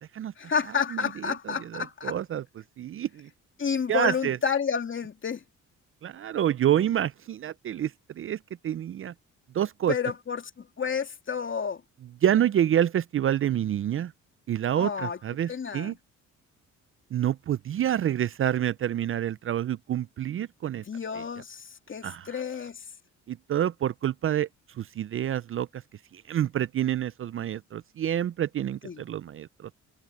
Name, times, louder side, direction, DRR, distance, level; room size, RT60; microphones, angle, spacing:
voice 1, 0.4-2.2 3.6-5.4 9.9-11.8 14.8-15.2 15.5-15.9 20.9-22.8 28.8-29.0, left 6 dB, 40° left, 2.9 m, -30 dB
voice 2, 0.9-2.4 2.8-3.3 3.9-4.4 6.0-8.4 8.6-9.1 9.5-9.9 12.2-14.1 14.5-15.9 17.1-20.8 21.1-21.2 22.0-22.4 23.3-24.5 24.7-25.8 26.1-29.7, right 10 dB, 45° right, 0.5 m, -28 dB
cardioid pair, 90°, 30 cm